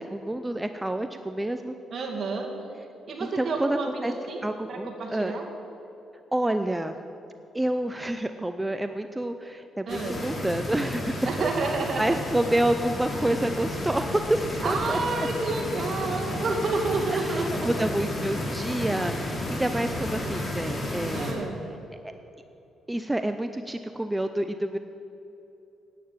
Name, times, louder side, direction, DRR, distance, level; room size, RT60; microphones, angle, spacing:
voice 1, 0.0-1.7 3.2-4.1 4.4-5.3 6.3-6.9 7.5-15.3 17.1-21.4 22.0-22.1 22.9-24.8, right 1 dB, 10° right, 8 dB, 0.5 m, -28 dB
voice 2, 1.9-2.5 3.1-5.5 9.9-10.2 11.2-12.2 14.6-17.9 21.1-21.6, right 3 dB, 50° right, 1 dB, 2.2 m, -30 dB
sound 1, 9.9-21.3, left 1 dB, 30° left, 2.6 m, -32 dB
9.9 x 8.8 x 8.8 m, 2.9 s
cardioid pair, 90°, 0 cm